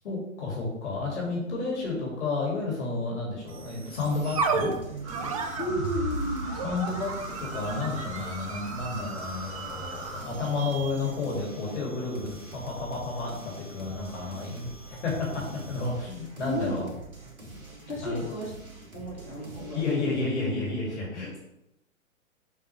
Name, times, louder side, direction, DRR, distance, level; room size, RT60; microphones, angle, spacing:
voice 1, 0.0-4.7 6.5-7.1 7.4-15.4 15.7-16.8 18.0-18.2 19.7-21.4, left 3 dB, 55° left, -3 dB, 2.1 m, -31 dB
sound 1, 3.5-16.0, right 4 dB, 25° right, 0.5 m, -36 dB
sound 2, 3.5-20.1, right 1 dB, 80° right, 2.0 m, -45 dB
sound 3, 5.0-10.2, right 1 dB, 10° right, 1.4 m, -39 dB
voice 2, 5.6-6.6 16.4-16.9 17.9-18.5 18.9-20.1, left 1 dB, 80° left, -5 dB, 2.3 m, -33 dB
6.7 x 4.6 x 3.2 m, 0.85 s
figure-of-eight pair, 115°, 41 cm